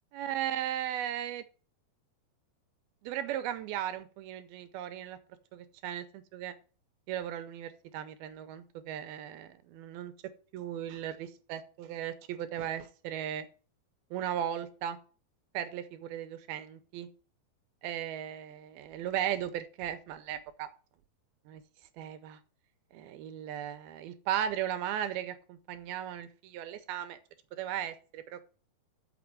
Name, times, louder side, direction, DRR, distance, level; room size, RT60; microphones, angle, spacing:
voice 1, 0.1-1.4 3.0-5.2 5.5-6.5 7.1-10.1 10.5-13.5 14.1-15.0 15.5-17.1 17.8-20.7 21.5-21.6 22.0-22.4 22.9-27.2 27.5-28.4, right 10 dB, 75° right, 10 dB, 2.4 m, -36 dB
7.0 x 5.7 x 7.5 m, 0.39 s
omnidirectional pair, 4.8 m